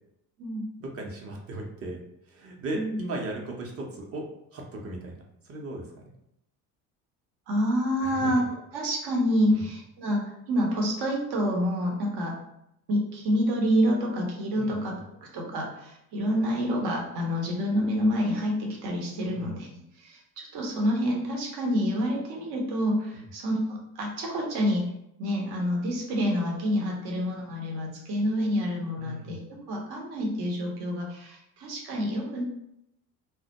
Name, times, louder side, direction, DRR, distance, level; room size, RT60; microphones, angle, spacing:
voice 1, 0.8-2.0 2.3-4.2 4.5-6.1 8.0-8.4 9.5-9.6 14.6-14.9 19.3-19.6 29.0-29.4, right 2 dB, 35° right, 0 dB, 0.7 m, -37 dB
voice 2, 7.5-8.4 8.7-12.4 12.9-24.9 25.2-32.4, equal, 60° right, -1 dB, 0.8 m, -28 dB
2.2 x 2.0 x 2.8 m, 0.80 s
hypercardioid pair, 60°, 43 cm